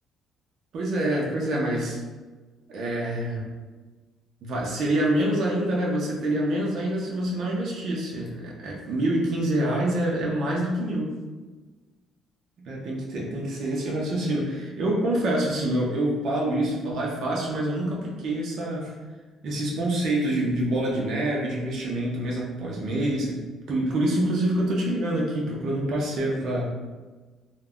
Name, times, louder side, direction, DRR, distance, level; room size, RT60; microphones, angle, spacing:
voice 1, 0.7-2.0 2.7-3.5 4.4-11.1 12.6-18.9 19.4-26.7, right 1 dB, 55° right, -3 dB, 0.5 m, -26 dB
2.3 x 2.1 x 3.5 m, 1.3 s
cardioid pair, 160°, 0 cm